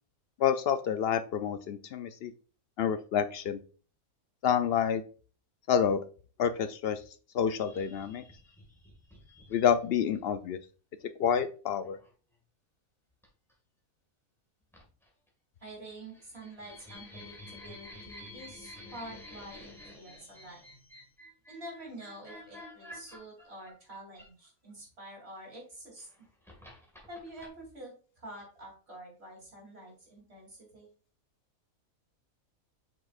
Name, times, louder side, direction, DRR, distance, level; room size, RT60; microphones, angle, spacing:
voice 1, 0.4-2.3 2.8-3.6 4.4-5.0 5.7-6.0 6.4-7.0 7.3-8.2 9.5-10.6 11.2-12.0, left 8 dB, 70° left, 11 dB, 0.6 m, -28 dB
sound 1, 7.6-10.2 11.8-12.1 13.2-13.5 14.7-15.3 15.6-24.7 25.7-27.5, left 1 dB, ahead, 1.7 m, -51 dB
voice 2, 15.6-20.6 21.5-26.1 27.1-30.9, right 1 dB, 45° right, 0 dB, 3.1 m, -47 dB
7.7 x 6.0 x 2.4 m, 0.38 s
omnidirectional pair, 1.5 m